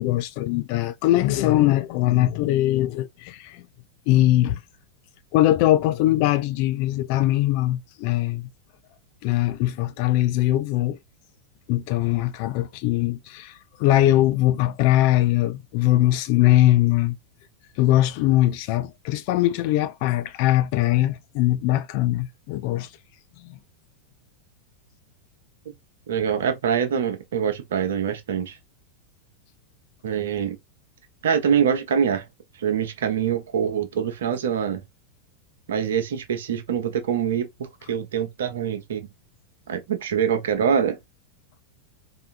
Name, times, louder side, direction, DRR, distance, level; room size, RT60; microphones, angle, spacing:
voice 1, 0.0-3.7 4.1-4.6 5.3-8.5 9.2-11.0 11.7-17.2 17.8-22.9 23.4-23.6, left 15 dB, 45° left, 0.5 m, -21 dB
voice 2, 26.1-28.6 30.0-30.6 31.2-32.3 32.6-34.8 35.7-39.1 39.7-41.0, right 8 dB, 60° right, 0.8 m, -24 dB
4.7 x 2.6 x 2.5 m
figure-of-eight pair, 90°, 0 cm